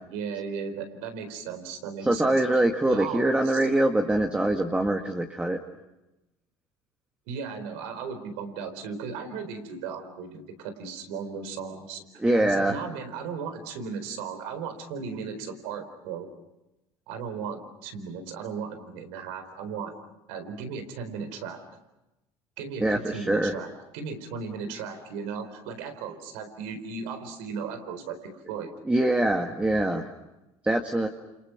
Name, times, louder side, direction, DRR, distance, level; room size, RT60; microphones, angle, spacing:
voice 1, 0.1-3.7 7.3-12.0 12.4-16.3 17.1-19.9 20.3-21.6 22.6-23.7 23.9-28.7, right 5 dB, 90° right, 8 dB, 4.3 m, -36 dB
voice 2, 2.0-5.6 12.2-12.8 22.8-23.5 28.9-30.1 30.6-31.1, right 1 dB, 10° right, 3 dB, 1.9 m, -24 dB
29.0 x 29.0 x 5.9 m, 0.96 s
supercardioid pair, 105°, 12 cm